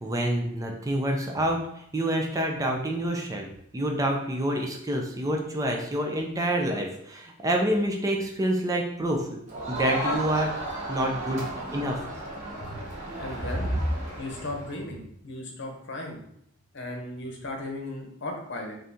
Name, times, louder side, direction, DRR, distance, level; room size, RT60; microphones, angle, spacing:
voice 1, 0.0-3.5 3.7-9.4 9.7-10.5 10.9-12.0, right 1 dB, 15° right, 2 dB, 0.4 m, -27 dB
Crowd, 9.5-14.8, right 1 dB, 35° right, 1.0 m, -34 dB
voice 2, 13.2-13.7 14.2-16.2 16.7-18.7, left 2 dB, 60° left, 1 dB, 0.8 m, -36 dB
4.0 x 2.6 x 3.5 m, 0.72 s
head